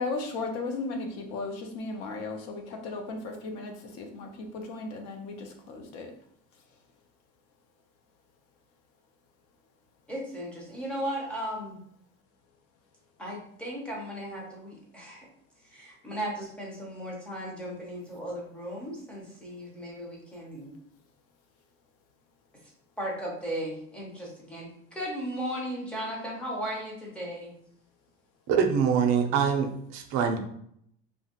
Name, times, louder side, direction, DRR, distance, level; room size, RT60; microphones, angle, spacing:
voice 1, 0.0-6.1, left 3 dB, 55° left, 4 dB, 0.5 m, -36 dB
voice 2, 10.1-11.8 13.2-15.3 15.7-20.7 23.0-27.5, equal, 5° left, -4 dB, 0.5 m, -36 dB
voice 3, 28.5-30.4, right 7 dB, 60° right, 5 dB, 0.4 m, -24 dB
2.8 x 2.2 x 2.8 m, 0.69 s
cardioid pair, 175°, 30 cm